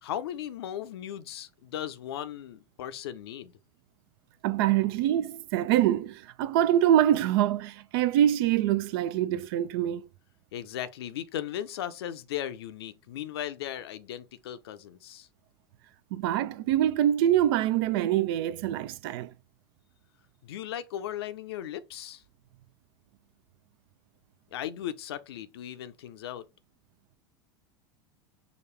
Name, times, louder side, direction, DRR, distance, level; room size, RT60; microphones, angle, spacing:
voice 1, 0.0-3.5 10.5-15.3 20.4-22.2 24.5-26.5, left 11 dB, 80° left, 0.5 m, -37 dB
voice 2, 4.4-10.1 16.1-19.3, right 11 dB, 65° right, 0.4 m, -25 dB
4.9 x 2.3 x 3.3 m
hypercardioid pair, 90°, 13 cm